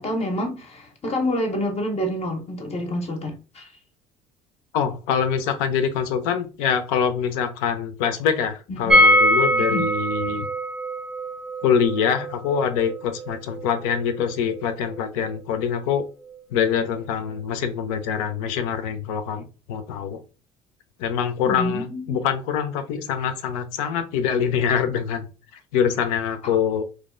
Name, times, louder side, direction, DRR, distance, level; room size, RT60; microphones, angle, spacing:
voice 1, 0.0-3.7 8.7-9.0 9.5-9.9 21.4-22.2 26.4-26.6, left 1 dB, 35° left, 0.6 m, -28 dB
voice 2, 4.7-10.5 11.6-16.1 16.5-20.2 21.0-25.2 25.7-26.8, left 7 dB, 80° left, 0.5 m, -24 dB
sound 1, 8.9-14.7 14.9-15.0 15.3-15.4, equal, ahead, 0.5 m, -22 dB
2.4 x 2.1 x 2.4 m
hypercardioid pair, 65°, 18 cm